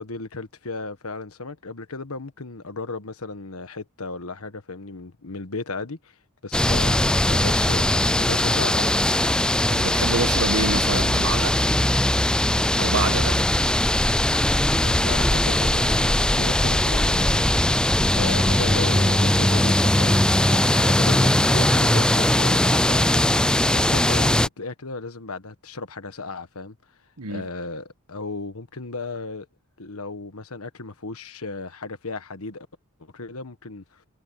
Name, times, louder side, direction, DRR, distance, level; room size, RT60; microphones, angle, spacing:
voice 1, 0.0-6.2 6.4-9.0 14.8-17.5 18.1-23.1 23.7-26.7 27.3-29.5 29.8-32.7 33.1-34.0, left 3 dB, 70° left, 1.5 m, -35 dB
sound 1, 6.5-24.5, left 1 dB, 5° left, 0.3 m, -20 dB
voice 2, 9.7-11.7 12.8-13.4 27.2-27.5, right 3 dB, 85° right, 1.8 m, -27 dB
head